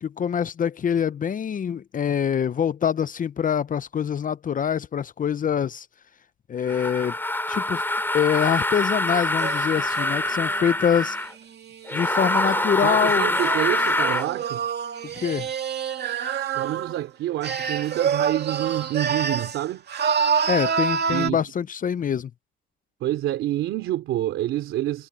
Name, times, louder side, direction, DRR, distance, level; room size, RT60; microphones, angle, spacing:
voice 1, 0.0-5.9 6.5-7.1 7.5-7.8 8.1-11.2 11.9-13.3 15.2-15.5 20.5-22.3, left 8 dB, 40° left, 0.6 m, -24 dB
sound 1, 6.7-11.3 11.9-14.3, left 1 dB, 10° left, 2.9 m, -25 dB
sound 2, 9.4-12.7 13.3-17.0 17.4-19.6 19.9-21.3, right 7 dB, 55° right, 2.4 m, -27 dB
voice 2, 12.8-14.6 16.5-19.8 21.1-21.4 23.0-25.1, right 14 dB, 85° right, 3.1 m, -27 dB
cardioid pair, 90°, 20 cm